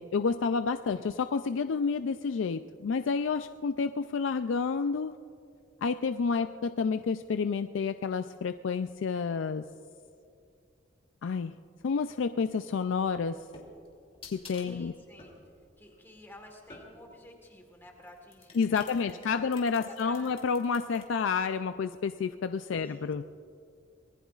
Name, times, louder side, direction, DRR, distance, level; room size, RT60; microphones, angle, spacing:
voice 1, 0.0-5.2 5.8-9.6 11.2-11.5 11.8-13.4 14.3-14.9 18.6-23.2, left 5 dB, 85° left, 9 dB, 0.4 m, -30 dB
sound 1, 13.0-17.2 18.0-21.0, left 3 dB, 30° left, 2.7 m, -51 dB
voice 2, 14.5-15.3 15.8-19.5 19.8-20.4 22.8-23.2, left 1 dB, 10° left, 2 dB, 1.4 m, -52 dB
25.0 x 19.5 x 2.4 m, 2.5 s
head